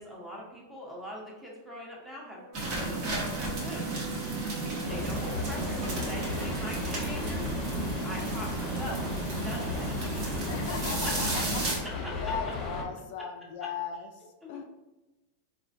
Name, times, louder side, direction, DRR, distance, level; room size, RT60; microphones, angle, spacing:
voice 1, 0.0-2.4 2.8-4.0 4.9-7.5 8.0-10.5 14.4-14.6, left 1 dB, 5° right, -4 dB, 0.8 m, -42 dB
Brass instrument, 2.3-6.6, right 3 dB, 70° right, 0.7 m, -46 dB
sound 1, 2.5-11.8, right 2 dB, 40° right, 0.9 m, -33 dB
voice 2, 4.7-5.4 10.5-14.6, left 6 dB, 60° left, 4 dB, 0.3 m, -38 dB
sound 2, 4.8-12.8, left 2 dB, 25° left, 0.7 m, -35 dB
3.5 x 2.5 x 2.5 m, 1.1 s
supercardioid pair, 150°, 0 cm